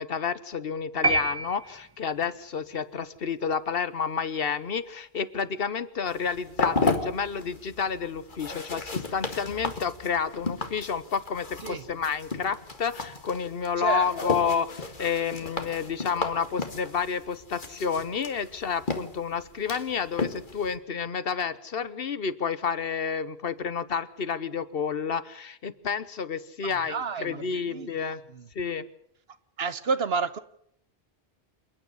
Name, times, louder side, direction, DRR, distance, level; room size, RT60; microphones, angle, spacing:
voice 1, 0.0-28.2 28.5-28.9, left 6 dB, 65° left, 15 dB, 1.2 m, -30 dB
sound 1, 1.0-2.3, right 2 dB, 20° right, 1.6 m, -27 dB
sound 2, 6.1-20.8, left 3 dB, 50° left, 1.9 m, -34 dB
voice 2, 13.8-14.3 26.6-27.9 28.3-28.4 29.6-30.4, right 5 dB, 75° right, 13 dB, 1.3 m, -30 dB
28.0 x 9.8 x 9.5 m, 0.71 s
omnidirectional pair, 1.0 m